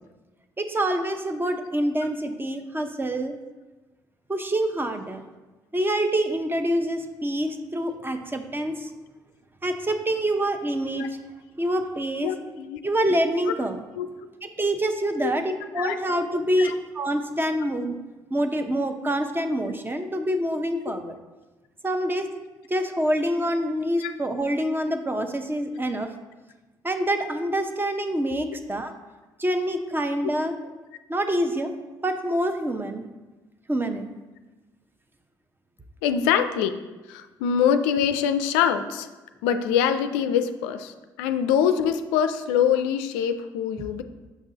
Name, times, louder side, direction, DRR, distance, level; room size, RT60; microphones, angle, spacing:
voice 1, 0.6-3.3 4.3-5.2 5.7-8.9 9.6-11.1 11.6-12.3 12.8-13.8 14.4-18.0 18.3-21.1 21.8-22.3 22.7-26.1 26.8-28.9 29.4-30.5 31.1-31.8 32.0-33.0 33.7-34.1, right 1 dB, 20° right, 7 dB, 0.8 m, -26 dB
voice 2, 12.2-12.8 13.5-13.6 14.0-14.1 15.2-15.3 15.8-16.0 16.6-16.7 24.0-24.1 30.2-30.3 36.0-36.8 37.1-39.1 39.4-44.0, left 8 dB, 80° left, 9 dB, 0.4 m, -24 dB
6.9 x 5.9 x 2.8 m, 1.2 s
hypercardioid pair, 50°, 10 cm